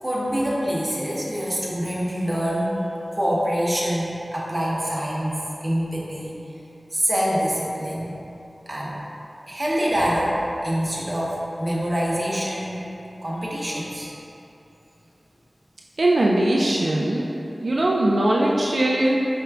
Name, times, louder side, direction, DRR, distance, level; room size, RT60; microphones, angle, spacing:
voice 1, 0.0-2.8 3.1-6.3 6.9-8.1 8.7-9.0 9.5-12.8 13.2-14.1, equal, 30° right, -6 dB, 0.9 m, -25 dB
voice 2, 16.0-17.3 17.6-19.2, right 1 dB, 75° right, -3 dB, 0.3 m, -20 dB
4.8 x 4.4 x 2.3 m, 2.9 s
wide cardioid pair, 70°, 0 cm